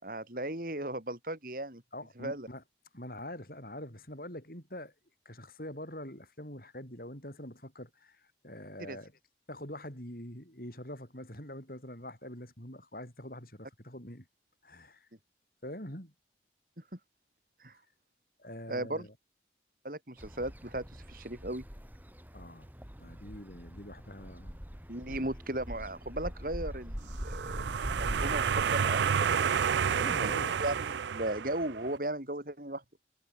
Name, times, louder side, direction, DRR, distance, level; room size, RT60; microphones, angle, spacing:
voice 1, 0.0-1.8 2.2-2.5 8.9-9.0 17.6-17.7 18.7-19.1 19.8-21.6 24.9-27.7 28.0-29.5 30.2-30.3 30.6-32.8, right 1 dB, 50° right, 3.9 m, -36 dB
voice 2, 1.9-2.6 2.9-4.9 5.2-9.1 9.5-14.3 14.6-15.1 15.6-16.1 18.4-19.1 22.3-22.7 23.0-25.3 29.9-30.6, left 1 dB, 50° left, 8.0 m, -44 dB
sound 1, 20.2-28.7, equal, 10° right, 4.7 m, -42 dB
sound 2, 27.1-31.9, right 7 dB, 75° right, 0.4 m, -30 dB
head